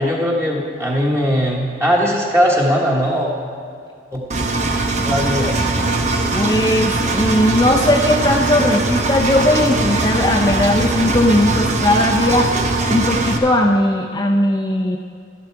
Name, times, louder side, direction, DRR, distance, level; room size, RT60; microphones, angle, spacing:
voice 1, 0.0-3.3 4.1-4.2 5.0-5.5, equal, 15° right, -3 dB, 1.3 m, -19 dB
Engine, 4.3-13.4, right 2 dB, 40° right, 0.9 m, -20 dB
voice 2, 6.3-12.5 12.9-15.0, left 1 dB, 20° left, 0 dB, 0.5 m, -17 dB
12.0 x 11.5 x 4.6 m, 2.3 s
head